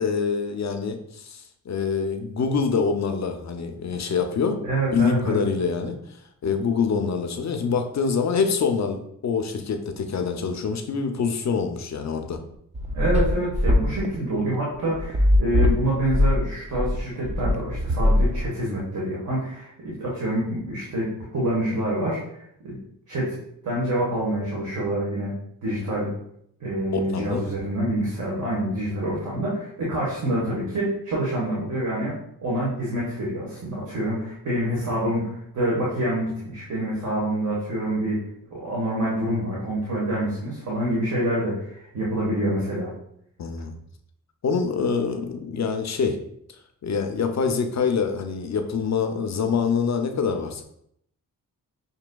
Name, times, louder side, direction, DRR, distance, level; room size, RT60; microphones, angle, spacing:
voice 1, 0.0-4.6 4.9-6.2 6.4-12.4 26.9-27.4 43.4-43.7 44.4-46.2 46.8-50.6, left 5 dB, 50° left, 6 dB, 0.5 m, -25 dB
voice 2, 4.6-5.4 12.9-22.2 22.6-22.7 23.1-23.4 23.6-25.4 25.6-26.1 26.6-38.2 38.5-42.9, right 1 dB, 55° right, -6 dB, 1.3 m, -26 dB
sound 1, 12.5-18.8, left 1 dB, 20° right, 0.3 m, -21 dB
5.9 x 2.7 x 2.2 m, 0.72 s
cardioid pair, 90°, 36 cm